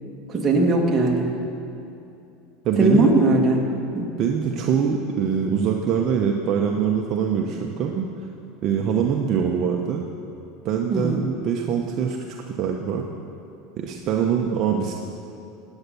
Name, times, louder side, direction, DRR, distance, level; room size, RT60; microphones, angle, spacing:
voice 1, 0.3-1.3 2.8-3.6 3.9-4.1 10.9-11.2, right 2 dB, 20° right, -2 dB, 2.3 m, -19 dB
voice 2, 2.6-3.1 4.2-8.1 8.6-10.0 10.6-13.1 13.8-15.0, right 7 dB, 40° right, 1 dB, 1.0 m, -23 dB
18.0 x 9.2 x 7.0 m, 2.7 s
supercardioid pair, 140°, 0 cm